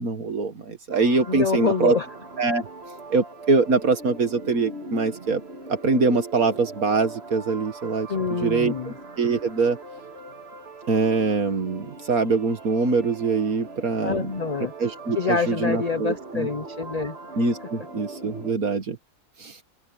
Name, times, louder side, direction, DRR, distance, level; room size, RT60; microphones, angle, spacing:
voice 1, 0.0-1.9 2.4-2.7 3.1-5.4 5.7-8.1 8.4-9.8 10.9-14.3 14.8-16.5 17.4-19.0 19.4-19.6, right 4 dB, 70° right, 2.0 m, -23 dB
sound 1, 0.9-18.5, right 2 dB, 45° right, 2.3 m, -40 dB
voice 2, 1.3-2.1 8.1-8.9 14.0-14.7 15.1-17.2, left 5 dB, 40° left, 0.6 m, -26 dB
open air
omnidirectional pair, 1.6 m